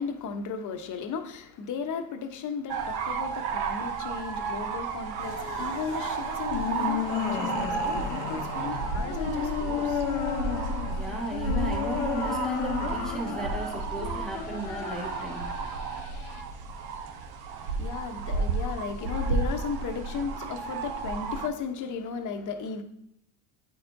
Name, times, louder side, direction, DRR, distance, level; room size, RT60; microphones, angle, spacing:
voice 1, 0.0-10.2 17.6-22.8, left 5 dB, 45° left, 0.9 m, -35 dB
sound 1, 2.7-21.5, right 4 dB, 60° right, 0.9 m, -32 dB
sound 2, 5.2-16.4, left 9 dB, 75° left, 0.8 m, -34 dB
voice 2, 10.8-15.5, right 1 dB, ahead, 1.5 m, -35 dB
9.0 x 4.3 x 2.6 m
hypercardioid pair, 85°, 44 cm